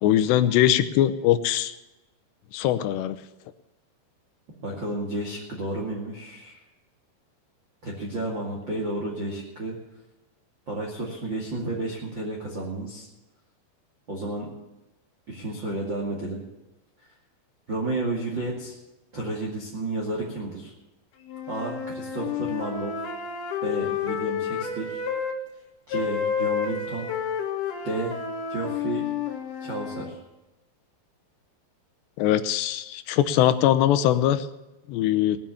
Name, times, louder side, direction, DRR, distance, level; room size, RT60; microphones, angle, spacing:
voice 1, 0.0-1.7 2.5-3.2 32.2-34.5 34.9-35.4, left 12 dB, 80° left, 11 dB, 2.7 m, -21 dB
voice 2, 4.6-6.6 7.8-9.8 10.7-13.1 14.1-14.5 15.3-16.4 17.7-18.8 19.1-20.7 21.5-22.9 23.6-25.0 25.9-27.1 27.8-28.1 28.5-29.1 29.6-30.2, right 2 dB, 35° right, -3 dB, 2.2 m, -31 dB
sound 1, 21.3-25.4 25.9-30.1, left 7 dB, 60° left, 3.5 m, -30 dB
19.5 x 7.6 x 7.0 m, 1.0 s
omnidirectional pair, 5.4 m